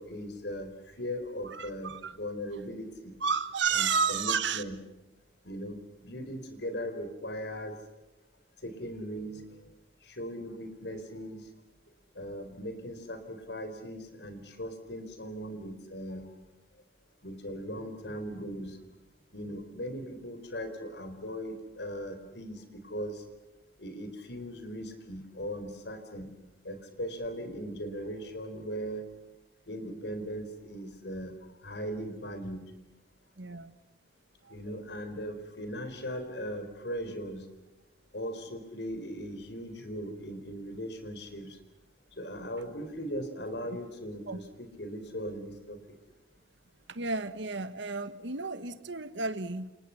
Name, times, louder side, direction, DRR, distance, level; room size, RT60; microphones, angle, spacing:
voice 1, 0.0-3.1 3.7-4.8 5.4-5.8 6.0-7.8 8.6-9.7 10.0-11.5 12.1-16.3 17.2-18.8 19.3-23.2 23.8-26.3 26.6-29.1 29.7-32.6 34.5-37.5 38.1-41.6 42.2-45.8, equal, 65° left, 4.1 m, -39 dB
voice 2, 1.4-2.1 3.2-4.6 33.4-33.8 34.4-34.5 44.3-44.4 46.9-49.7, right 5 dB, 75° right, 1.4 m, -32 dB
29.0 x 28.0 x 5.8 m
head